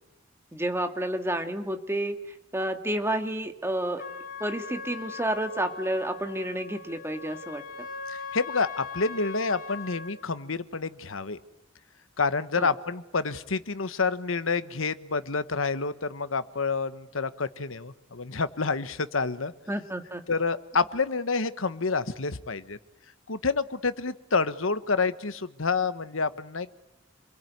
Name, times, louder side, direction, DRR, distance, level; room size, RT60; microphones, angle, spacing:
voice 1, 0.5-2.2 2.5-4.0 4.4-7.9 12.6-12.7 19.7-20.2, right 1 dB, 15° right, 6 dB, 1.9 m, -30 dB
Trumpet, 4.0-10.2, left 5 dB, 45° left, 5.0 m, -40 dB
voice 2, 8.1-11.4 12.2-19.5 20.3-22.8 23.3-26.7, left 4 dB, 85° left, 13 dB, 1.2 m, -28 dB
28.5 x 22.5 x 9.4 m, 0.87 s
head